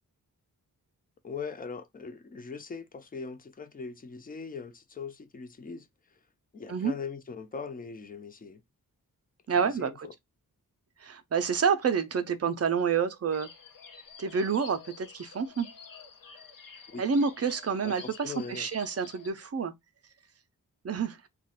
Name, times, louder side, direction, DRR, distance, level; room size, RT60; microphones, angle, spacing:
voice 1, 1.2-5.9 6.5-8.6 9.6-10.1 16.9-17.0 17.8-18.7, left 5 dB, 25° left, 0.4 m, -40 dB
voice 2, 9.5-10.1 11.0-13.5 14.2-15.7 17.0-19.7 20.8-21.2, right 6 dB, 45° right, 0.5 m, -28 dB
sound 1, 13.3-19.3, left 6 dB, 65° left, 0.8 m, -50 dB
2.4 x 2.2 x 4.0 m
wide cardioid pair, 120°, 36 cm